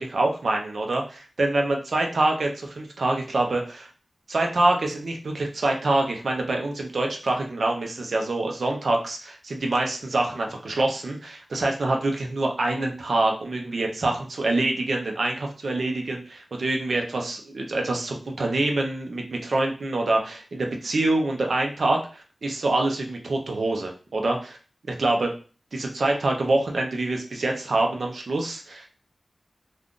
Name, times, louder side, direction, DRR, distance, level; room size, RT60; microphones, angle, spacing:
voice 1, 0.0-3.9 4.3-24.6 24.9-25.3 25.7-28.9, right 2 dB, 70° right, 2 dB, 0.6 m, -25 dB
2.4 x 2.4 x 3.7 m, 0.37 s
wide cardioid pair, 95°, 0 cm